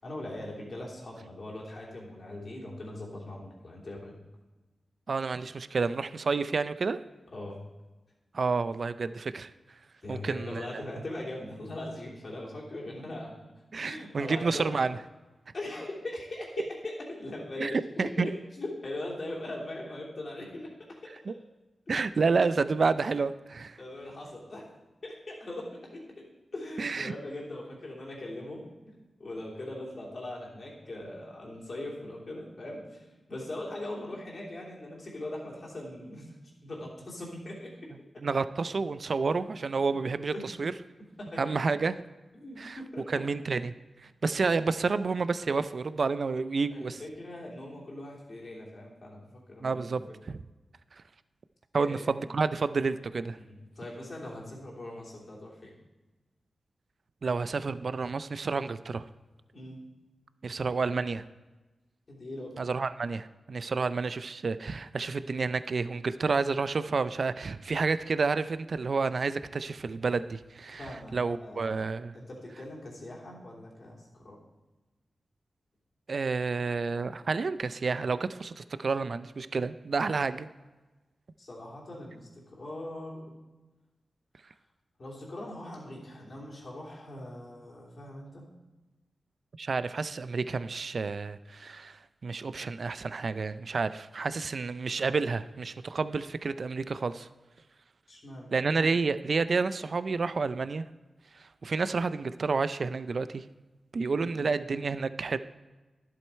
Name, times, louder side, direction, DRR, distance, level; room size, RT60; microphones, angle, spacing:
voice 1, 0.0-4.2 7.3-7.6 10.0-13.4 13.8-14.7 15.5-21.1 23.8-24.7 25.0-36.4 36.6-38.2 39.3-39.5 40.2-40.5 41.2-41.7 42.3-43.3 46.7-50.2 51.7-52.2 53.3-55.7 59.5-59.8 62.1-62.6 70.8-71.9 72.1-74.4 81.4-83.4 85.0-88.4 98.1-98.5 104.1-104.5, left 1 dB, 55° left, -3 dB, 3.2 m, -41 dB
voice 2, 5.1-7.0 8.3-9.5 10.1-10.7 13.7-15.0 17.6-18.3 21.3-21.4 21.9-23.8 26.8-27.1 38.2-40.7 41.4-41.9 42.6-42.8 43.1-43.7 44.0-47.0 49.6-50.0 50.3-50.4 51.7-53.4 57.2-59.0 60.4-61.2 62.6-70.9 71.1-72.2 76.1-80.5 89.6-97.3 98.5-100.9 101.3-103.4 103.9-105.4, right 4 dB, 65° right, 13 dB, 0.4 m, -30 dB
11.5 x 7.7 x 4.4 m, 1.2 s
cardioid pair, 55°, 0 cm